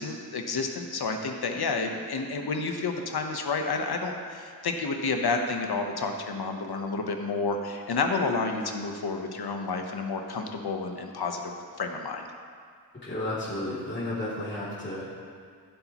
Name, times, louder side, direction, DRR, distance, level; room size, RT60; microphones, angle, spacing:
voice 1, 0.0-12.3, left 4 dB, 70° left, 4 dB, 1.1 m, -30 dB
voice 2, 13.0-15.3, left 1 dB, 30° left, -10 dB, 2.9 m, -33 dB
15.0 x 8.1 x 3.1 m, 2.1 s
wide cardioid pair, 110°, 39 cm